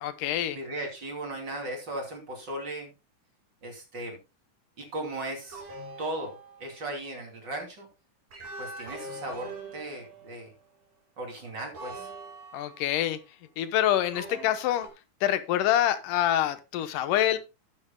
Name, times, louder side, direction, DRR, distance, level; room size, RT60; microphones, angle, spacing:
voice 1, 0.0-0.6 12.5-13.2 13.6-14.9 15.2-17.4, left 12 dB, 90° left, 2.6 m, -26 dB
voice 2, 0.5-2.9 3.6-4.2 4.8-5.7 6.0-6.3 6.6-7.9 8.6-10.5 11.2-12.1, right 1 dB, 35° right, 3.2 m, -37 dB
sound 1, 5.5-6.9 8.3-10.7 11.7-13.2 14.1-14.9, right 2 dB, 85° right, 5.9 m, -43 dB
13.5 x 9.8 x 2.2 m
omnidirectional pair, 3.6 m